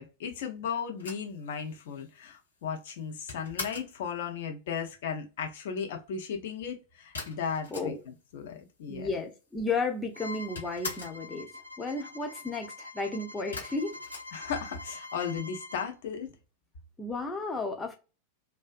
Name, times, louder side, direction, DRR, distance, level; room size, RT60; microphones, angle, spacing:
voice 1, 0.0-9.1 14.3-16.3, left 6 dB, 55° left, 0.6 m, -36 dB
sound 1, 1.0-4.0 7.1-8.3 8.6-8.7 8.9-9.7 9.9-11.3 13.5-15.0, left 3 dB, 70° left, 1.0 m, -42 dB
voice 2, 8.9-11.5 11.8-14.0 17.0-17.9, left 3 dB, 15° left, 0.5 m, -33 dB
Bowed string instrument, 10.1-15.9, left 2 dB, 85° right, 0.4 m, -45 dB
2.4 x 2.2 x 2.4 m
figure-of-eight pair, 90°, 0 cm